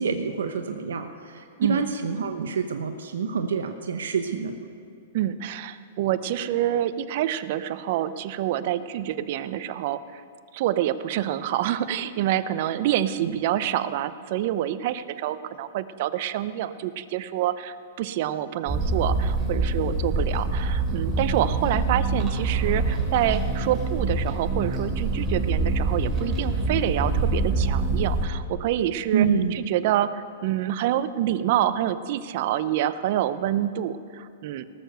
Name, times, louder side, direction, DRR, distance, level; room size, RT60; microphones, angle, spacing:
voice 1, 0.0-4.6 13.2-13.4 29.1-29.6, right 6 dB, 85° right, 6 dB, 0.8 m, -27 dB
voice 2, 5.1-10.2 10.5-34.6, right 12 dB, 55° right, 14 dB, 0.6 m, -27 dB
sound 1, 18.7-28.3, right 3 dB, 20° right, 2.9 m, -25 dB
18.5 x 6.8 x 6.5 m, 2.5 s
hypercardioid pair, 135°, 0 cm